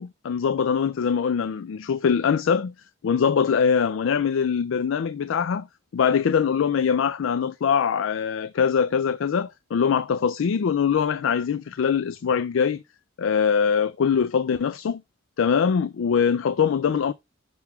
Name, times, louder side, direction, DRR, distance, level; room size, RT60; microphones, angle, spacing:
voice 1, 0.0-2.7 3.0-5.7 5.9-12.8 13.2-15.0 15.4-17.1, left 6 dB, 65° left, 0.4 m, -23 dB
6.1 x 3.4 x 5.6 m
head